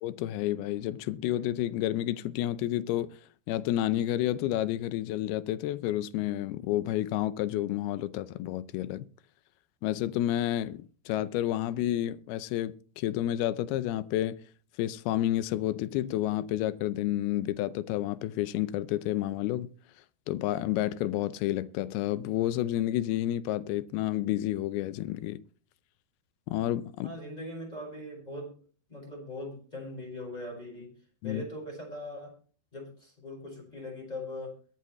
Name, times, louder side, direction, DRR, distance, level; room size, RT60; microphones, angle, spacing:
voice 1, 0.0-3.1 3.5-9.1 9.8-14.4 14.8-19.7 20.3-25.4 26.5-27.1 31.2-31.4, left 13 dB, 80° left, 2.5 m, -30 dB
voice 2, 27.0-28.5 28.9-30.9 31.2-32.3 32.7-34.6, left 1 dB, 10° left, 4.9 m, -40 dB
22.5 x 7.5 x 3.1 m
omnidirectional pair, 4.7 m